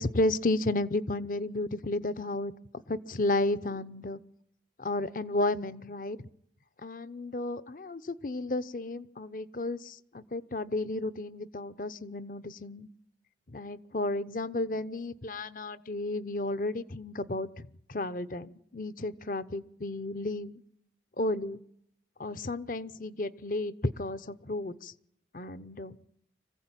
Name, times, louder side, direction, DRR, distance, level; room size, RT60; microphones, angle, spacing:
voice 1, 0.0-2.5 2.9-4.2 4.8-6.3 6.8-12.9 13.5-20.6 21.2-21.6 22.2-24.9 25.3-26.0, left 2 dB, 50° left, 16 dB, 0.8 m, -33 dB
25.0 x 15.5 x 9.0 m, 0.75 s
head